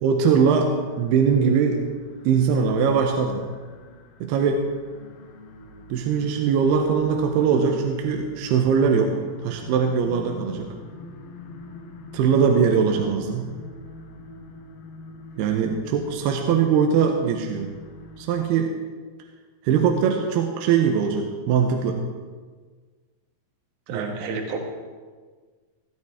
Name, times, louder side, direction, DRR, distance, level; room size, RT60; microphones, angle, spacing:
voice 1, 0.0-1.8 2.2-3.5 4.2-4.6 5.9-9.2 9.4-10.7 12.1-13.5 15.4-17.7 18.2-18.7 19.6-22.0 23.9-24.2, right 6 dB, 75° right, 3 dB, 2.7 m, -21 dB
sound 1, 0.7-18.4, left 2 dB, 70° left, 2.5 m, -43 dB
voice 2, 23.9-24.6, right 4 dB, 55° right, 2 dB, 2.5 m, -30 dB
16.0 x 13.5 x 3.6 m, 1.5 s
omnidirectional pair, 5.1 m